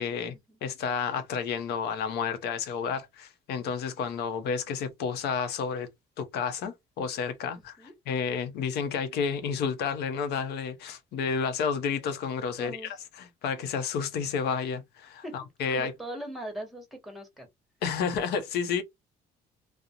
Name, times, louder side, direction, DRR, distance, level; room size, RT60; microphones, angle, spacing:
voice 1, 0.0-0.3 0.6-5.9 6.2-15.9 17.8-18.8, left 6 dB, 75° left, 0.6 m, -31 dB
voice 2, 12.6-13.0 15.2-15.3 15.7-17.5, right 1 dB, ahead, 1.0 m, -40 dB
2.4 x 2.0 x 2.7 m
cardioid pair, 110°, 17 cm